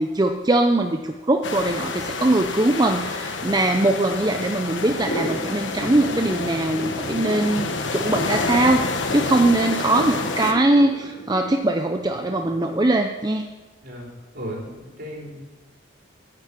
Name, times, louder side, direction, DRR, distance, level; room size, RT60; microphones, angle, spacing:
voice 1, 0.0-13.5, right 2 dB, 20° right, 4 dB, 0.6 m, -21 dB
sound 1, 1.4-10.5, left 3 dB, 70° left, 1.2 m, -29 dB
sound 2, 5.0-12.7, right 1 dB, 55° left, 3.3 m, -33 dB
voice 2, 14.3-15.4, equal, 55° right, -2 dB, 3.8 m, -35 dB
9.8 x 9.3 x 8.3 m, 1.2 s
head